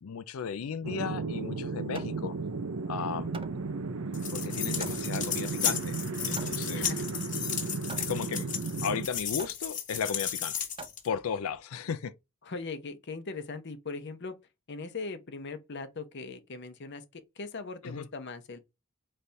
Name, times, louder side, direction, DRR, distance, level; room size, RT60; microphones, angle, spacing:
voice 1, 0.0-2.4 2.9-3.3 4.3-6.0 6.3-6.9 8.0-8.5 8.8-10.7 11.0-12.1 17.8-18.1, left 7 dB, 85° left, 0.4 m, -35 dB
sound 1, 0.8-9.1, right 4 dB, 70° right, 0.6 m, -34 dB
Hammer, 1.4-11.6, right 3 dB, 25° right, 0.6 m, -49 dB
sound 2, 4.1-11.1, left 8 dB, 40° left, 1.2 m, -34 dB
voice 2, 6.7-7.3 12.4-14.3 14.7-18.6, left 4 dB, 55° left, 0.8 m, -40 dB
4.1 x 3.3 x 3.3 m
head